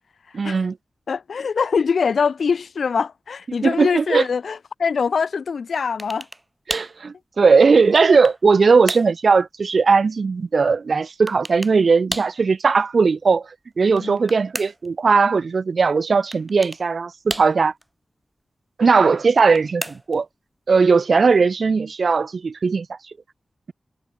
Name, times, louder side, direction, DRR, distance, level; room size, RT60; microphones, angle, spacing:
voice 1, 0.3-0.7 3.6-4.3 6.7-13.5 13.8-17.7 18.8-20.3 20.7-23.0, right 4 dB, 65° right, 0.8 m, -18 dB
voice 2, 1.1-6.3 14.0-14.2, left 5 dB, 85° left, 1.6 m, -23 dB
sound 1, 6.0-6.4 6.7-7.0 7.6-8.4 8.9-9.2 11.3-11.8 12.1-12.4 13.8-14.9 16.3-16.8 17.3-17.8 19.3-20.2, right 1 dB, 15° right, 2.4 m, -33 dB
wide cardioid pair, 80°, 0 cm